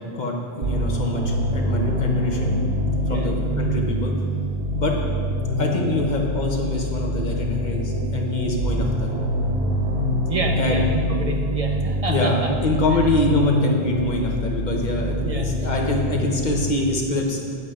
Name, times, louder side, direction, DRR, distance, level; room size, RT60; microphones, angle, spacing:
voice 1, 0.0-2.5 3.1-4.1 4.7-4.9 5.6-9.1 10.6-10.9 12.1-17.4, left 2 dB, 45° left, 1 dB, 1.1 m, -25 dB
sound 1, 0.6-16.6, equal, 85° right, 1.1 m, -25 dB
voice 2, 3.0-3.4 10.3-12.5 12.9-13.1 15.2-15.7, right 2 dB, 40° right, 2 dB, 0.7 m, -29 dB
9.3 x 7.8 x 3.7 m, 2.2 s
omnidirectional pair, 1.0 m